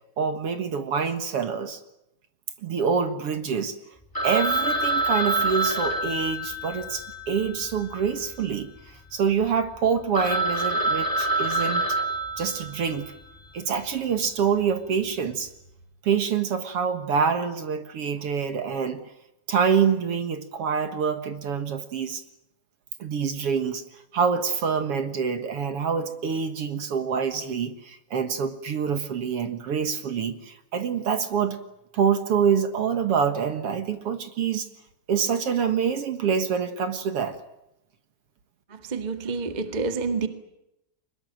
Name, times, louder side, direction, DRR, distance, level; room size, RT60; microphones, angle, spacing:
voice 1, 0.2-1.8 2.6-3.8 4.2-8.7 9.1-11.8 12.4-13.1 13.5-15.5 16.0-19.0 19.5-22.2 23.0-23.8 24.1-31.6 31.9-34.7 35.1-37.4, right 6 dB, 55° right, 9 dB, 2.2 m, -26 dB
Telephone, 4.1-8.5 8.8-8.9 9.4-9.5 9.8-9.9 10.1-13.1, right 2 dB, 5° left, 2.9 m, -27 dB
voice 2, 38.7-40.3, right 4 dB, 20° right, 8 dB, 1.2 m, -28 dB
24.0 x 21.5 x 9.0 m, 0.86 s
omnidirectional pair, 3.6 m